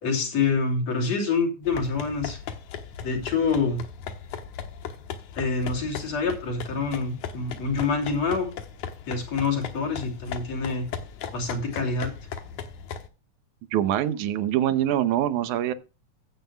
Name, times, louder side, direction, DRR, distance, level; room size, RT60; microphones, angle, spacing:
voice 1, 0.0-2.4 3.0-3.8 5.4-8.5 9.1-10.9 11.3-12.1, left 4 dB, 60° left, 4.0 m, -26 dB
sound 1, 1.6-13.1, left 7 dB, 85° left, 2.7 m, -38 dB
voice 2, 13.7-15.7, right 11 dB, 85° right, 2.3 m, -24 dB
14.5 x 9.1 x 2.3 m
omnidirectional pair, 3.4 m